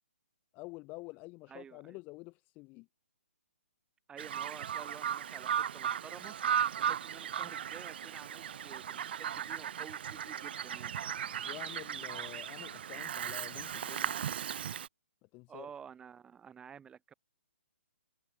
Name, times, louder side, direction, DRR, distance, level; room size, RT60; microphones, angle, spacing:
voice 1, 0.5-2.9 11.4-14.2 15.3-15.7, left 25 dB, 25° left, 1.9 m, -48 dB
voice 2, 1.5-2.0 4.1-11.0 15.5-17.1, right 7 dB, 10° right, 8.0 m, -51 dB
Bird vocalization bird call bird song, 4.2-14.9, right 9 dB, 50° right, 0.3 m, -36 dB
figure-of-eight pair, 135°, 7 cm